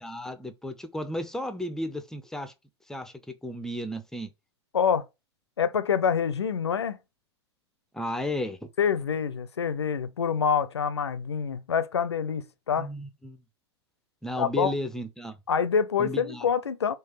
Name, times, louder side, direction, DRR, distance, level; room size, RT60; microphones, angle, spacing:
voice 1, 0.0-2.5 2.9-3.1 3.4-4.3 7.9-8.7 12.8-13.4 14.2-15.4 16.0-16.5, left 1 dB, 5° left, 0.5 m, -33 dB
voice 2, 4.7-5.0 5.6-7.0 8.8-12.9 14.4-14.7 15.5-16.9, left 7 dB, 75° left, 0.5 m, -26 dB
4.5 x 2.4 x 4.7 m
figure-of-eight pair, 95°, 14 cm